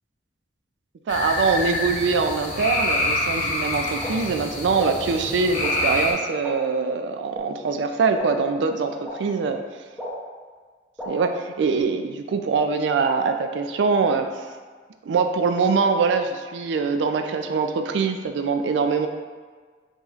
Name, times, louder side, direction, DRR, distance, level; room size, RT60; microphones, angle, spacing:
sound 1, 1.1-6.1, left 2 dB, 45° left, 0.7 m, -26 dB
voice 1, 1.1-9.6 11.1-11.3 11.6-14.5 15.1-19.1, right 4 dB, 85° right, 6 dB, 0.3 m, -23 dB
sound 2, 4.0-4.1 4.8-4.9 5.6-5.7 6.4-6.5 7.3-7.4 8.1-8.2 9.0-9.1 10.0-10.1 11.0-11.1, left 1 dB, 5° right, 0.7 m, -33 dB
4.8 x 2.8 x 2.4 m, 1.5 s
head